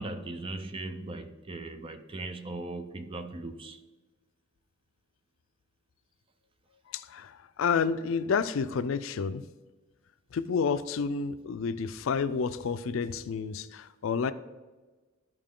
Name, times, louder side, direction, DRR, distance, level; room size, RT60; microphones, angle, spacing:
voice 1, 0.0-3.8, right 2 dB, 25° right, 0.5 m, -38 dB
voice 2, 6.9-9.4 10.3-14.3, left 5 dB, 75° left, 0.4 m, -30 dB
12.5 x 4.5 x 3.7 m
head